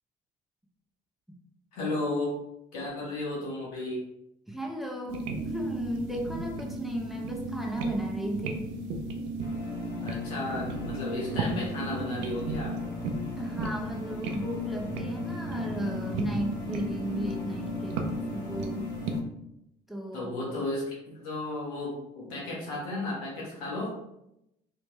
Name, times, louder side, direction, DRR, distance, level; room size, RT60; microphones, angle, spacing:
voice 1, 1.7-2.4 2.7-4.0 10.0-12.8 20.1-23.9, left 2 dB, 90° left, -5 dB, 1.4 m, -33 dB
voice 2, 4.5-8.7 13.4-18.9 19.9-20.3, right 1 dB, ahead, 0 dB, 0.8 m, -35 dB
sound 1, 5.1-19.2, right 2 dB, 75° right, 0.5 m, -35 dB
sound 2, 9.4-19.2, left 4 dB, 65° left, 0.8 m, -40 dB
3.4 x 2.8 x 3.0 m, 0.83 s
hypercardioid pair, 60°, 19 cm